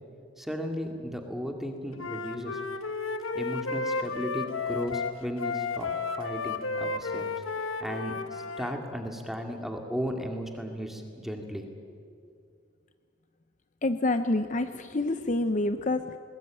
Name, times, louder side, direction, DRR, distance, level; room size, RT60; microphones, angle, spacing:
voice 1, 0.4-2.6 3.3-5.9 6.2-7.3 7.8-11.7, equal, ahead, 3 dB, 2.2 m, -35 dB
Wind instrument woodwind instrument, 2.0-8.8, left 4 dB, 90° left, 1.4 m, -33 dB
voice 2, 13.8-16.2, left 2 dB, 40° left, 10 dB, 0.7 m, -27 dB
21.0 x 21.0 x 9.1 m, 2.4 s
head